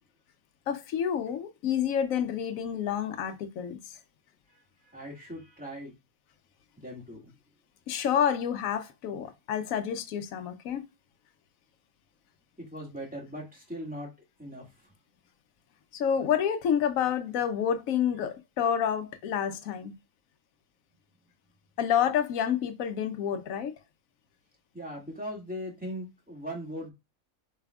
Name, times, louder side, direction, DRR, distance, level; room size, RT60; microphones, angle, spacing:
voice 1, 0.7-4.0 7.9-10.8 15.9-19.9 21.8-23.7, left 8 dB, 90° left, 1.1 m, -29 dB
voice 2, 4.8-5.9 6.8-7.3 12.6-14.1 14.4-14.6 24.7-26.9, equal, 5° right, 1.9 m, -39 dB
6.9 x 3.3 x 2.3 m
omnidirectional pair, 1.4 m